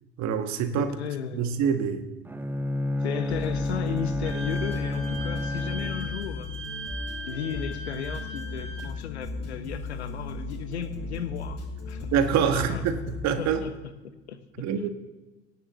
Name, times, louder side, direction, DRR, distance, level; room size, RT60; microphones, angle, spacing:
voice 1, 0.2-0.9 1.3-2.0 12.1-13.0 13.2-13.6 14.6-14.9, right 8 dB, 55° right, 8 dB, 1.6 m, -25 dB
voice 2, 0.8-1.6 3.0-6.5 7.3-12.2 12.4-12.9 13.4-13.7 14.0-14.9, left 8 dB, 80° left, 11 dB, 1.0 m, -35 dB
Bowed string instrument, 2.2-6.3, left 2 dB, 5° right, 0.7 m, -30 dB
sound 1, 3.3-13.4, left 3 dB, 50° left, 5.9 m, -37 dB
Wind instrument woodwind instrument, 4.2-8.9, right 1 dB, 40° right, 3.4 m, -39 dB
17.0 x 7.2 x 8.0 m, 1.1 s
figure-of-eight pair, 60°, 32 cm